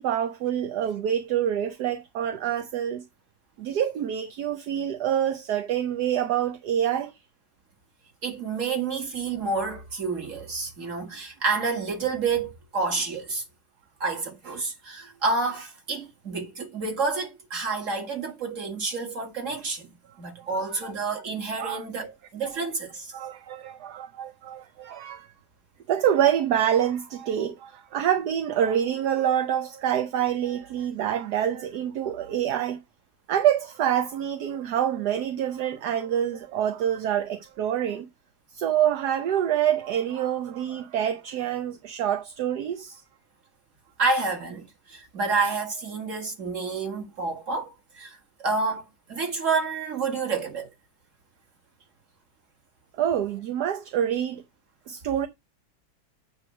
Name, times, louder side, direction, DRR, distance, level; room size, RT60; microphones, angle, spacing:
voice 1, 0.0-3.0 3.6-7.1 20.4-20.8 21.6-22.1 22.4-22.6 23.1-25.3 25.9-32.8 33.3-38.1 38.5-43.0 52.9-54.4 54.9-55.3, right 10 dB, 65° right, 1.2 m, -26 dB
voice 2, 8.2-13.4 14.0-19.9 20.2-23.1 44.0-48.8 49.1-50.7, right 4 dB, 40° right, 2.2 m, -29 dB
8.9 x 3.4 x 5.9 m
omnidirectional pair, 2.2 m